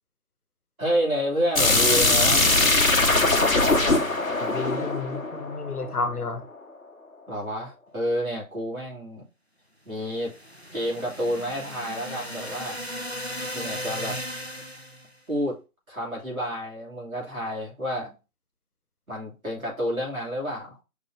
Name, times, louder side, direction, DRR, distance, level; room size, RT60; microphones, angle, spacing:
voice 1, 0.8-2.5 7.3-9.2 9.9-10.3 10.7-12.8 13.5-14.2 15.3-15.6 15.9-18.1 19.1-20.8, equal, 70° right, 2.5 m, -29 dB
sound 1, 1.5-6.3, left 2 dB, 65° left, 1.0 m, -21 dB
voice 2, 4.4-6.4, left 3 dB, 90° left, 1.0 m, -31 dB
sound 2, 10.1-15.1, equal, 50° left, 0.5 m, -36 dB
5.2 x 3.4 x 2.5 m
figure-of-eight pair, 180°, 44 cm